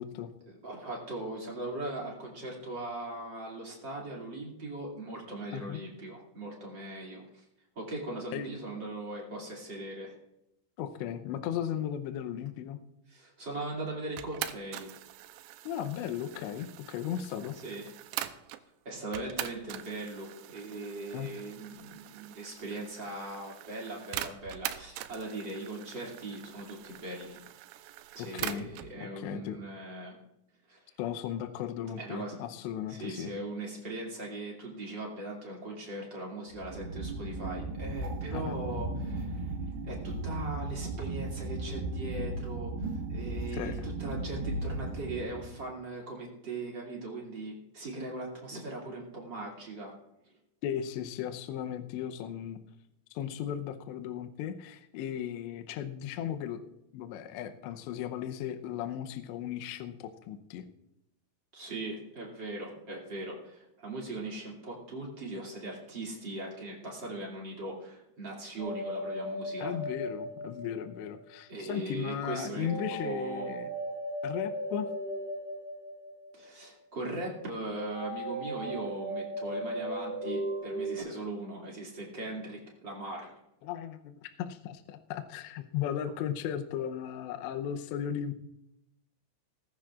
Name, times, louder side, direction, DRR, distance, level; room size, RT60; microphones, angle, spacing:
voice 1, 0.5-7.4 7.8-10.1 13.1-14.9 17.6-17.9 18.2-18.3 18.8-27.4 28.1-30.2 30.7-30.8 32.0-32.4 32.9-39.5 39.8-49.9 61.5-69.8 71.5-73.5 76.3-83.4, right 2 dB, 35° right, -2 dB, 2.1 m, -39 dB
voice 2, 10.8-12.8 15.7-17.6 21.1-21.3 28.3-28.7 29.0-29.6 31.0-33.3 38.3-38.6 43.5-43.7 50.6-52.6 53.1-56.6 56.9-60.6 69.6-73.7 74.2-74.9 83.6-88.3, left 10 dB, 80° left, 7 dB, 2.7 m, -36 dB
sound 1, 14.2-18.6 19.1-28.9, right 13 dB, 85° right, 3.3 m, -43 dB
sound 2, 36.5-45.6, right 2 dB, 65° right, 3.2 m, -36 dB
sound 3, 68.6-71.3 72.6-76.6 77.9-81.0, right 1 dB, 20° left, 3.5 m, -37 dB
18.5 x 14.5 x 2.5 m, 0.84 s
omnidirectional pair, 5.8 m